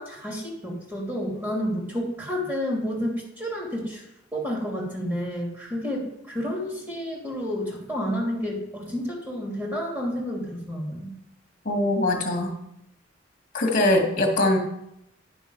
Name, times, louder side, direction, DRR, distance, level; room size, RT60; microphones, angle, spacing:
voice 1, 0.0-4.0 4.3-11.1, equal, 10° right, -3 dB, 2.7 m, -30 dB
voice 2, 11.7-12.5 13.5-14.6, left 1 dB, 45° left, 2 dB, 2.0 m, -22 dB
10.5 x 6.2 x 5.4 m, 0.81 s
head